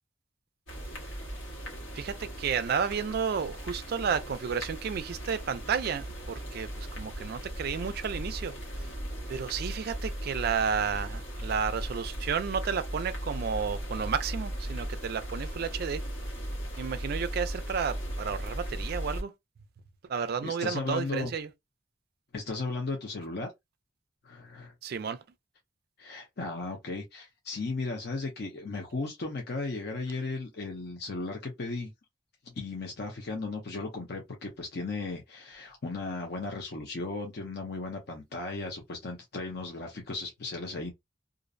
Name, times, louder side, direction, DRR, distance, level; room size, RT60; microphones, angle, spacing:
sound 1, 0.7-19.2, equal, 80° left, 1.2 m, -37 dB
voice 1, 1.9-8.9 9.3-16.0 16.8-19.3 20.1-21.5 24.8-25.2, right 6 dB, 55° right, 0.3 m, -32 dB
voice 2, 20.4-21.3 22.3-23.5 24.2-24.7 26.0-31.9 32.5-40.9, left 3 dB, 55° left, 0.6 m, -36 dB
2.4 x 2.0 x 2.5 m
head